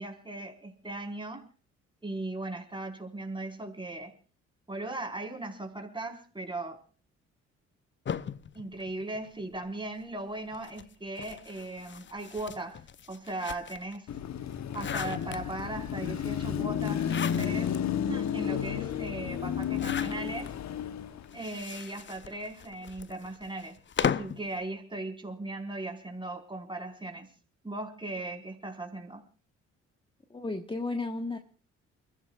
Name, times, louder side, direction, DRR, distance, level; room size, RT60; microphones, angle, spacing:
voice 1, 0.0-1.5 2.0-4.1 4.7-6.8 8.5-12.8 13.1-14.1 14.7-17.8 18.0-20.5 21.3-27.3 27.6-29.2, right 2 dB, 15° right, 4 dB, 4.6 m, -38 dB
sound 1, 8.1-9.7 10.5-14.0 14.4-15.8 16.8-17.8 18.3-18.4 18.6-18.7 19.6-20.5 21.2-24.5, left 7 dB, 30° left, 0.8 m, -37 dB
Car passing by / Traffic noise roadway noise / Engine, 14.1-21.4, left 9 dB, 50° left, 1.1 m, -32 dB
voice 2, 30.3-31.4, left 3 dB, 15° left, 5 dB, 1.4 m, -33 dB
29.0 x 15.0 x 2.4 m, 0.40 s
hypercardioid pair, 45°, 36 cm